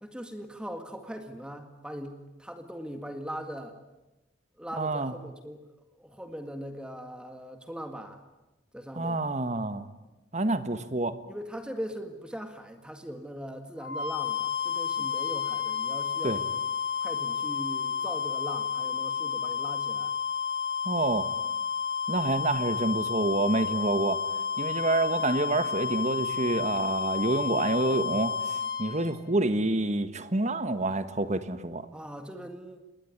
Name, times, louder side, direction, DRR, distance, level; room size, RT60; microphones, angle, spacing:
voice 1, 0.0-3.8 4.6-5.6 6.0-8.2 8.7-9.3 11.3-16.4 17.0-20.1 31.9-32.8, equal, 5° right, 6 dB, 1.9 m, -40 dB
voice 2, 4.8-5.1 8.9-9.9 10.3-11.2 16.2-16.4 20.8-21.3 22.1-24.2 24.6-31.9, right 2 dB, 35° right, 11 dB, 1.5 m, -28 dB
sound 1, 13.8-29.1, left 6 dB, 70° left, 4.5 m, -31 dB
27.5 x 21.0 x 9.7 m, 1.0 s
head